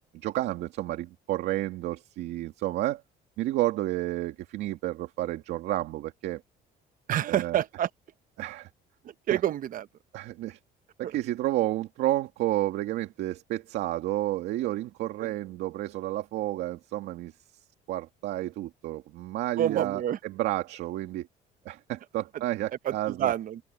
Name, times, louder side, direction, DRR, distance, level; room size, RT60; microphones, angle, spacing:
voice 1, 0.2-3.0 3.4-6.4 7.3-7.6 8.4-8.7 9.3-9.4 10.1-10.6 11.0-17.3 17.9-21.3 21.6-23.3, right 15 dB, 80° right, 2.4 m, -31 dB
voice 2, 7.1-7.9 9.0-9.9 11.0-11.1 15.2-15.3 19.6-20.2 22.8-23.6, right 11 dB, 55° right, 0.8 m, -28 dB
open air
cardioid pair, 110°, 17 cm